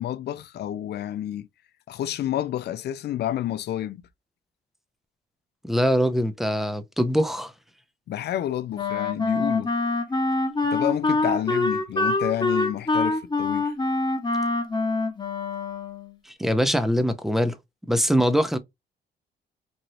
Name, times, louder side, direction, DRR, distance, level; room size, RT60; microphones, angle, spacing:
voice 1, 0.0-1.5 1.9-4.0 8.1-9.7 10.7-13.7, left 12 dB, 55° left, 0.4 m, -29 dB
voice 2, 5.7-7.5 16.3-17.6 17.9-18.6, equal, ahead, 0.6 m, -23 dB
Wind instrument woodwind instrument, 8.7-16.1, left 2 dB, 20° left, 1.0 m, -25 dB
3.1 x 2.6 x 2.6 m
supercardioid pair, 75°, 20 cm